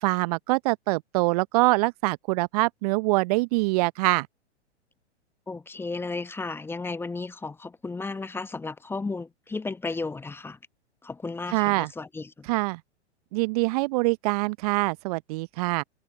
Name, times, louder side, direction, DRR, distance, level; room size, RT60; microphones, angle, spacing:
voice 1, 0.0-4.3 11.5-11.9 12.5-12.8 13.3-15.8, right 24 dB, 35° right, 0.8 m, -24 dB
voice 2, 5.5-10.6 11.0-12.5, left 3 dB, 5° left, 1.2 m, -34 dB
figure-of-eight pair, 110°, 35 cm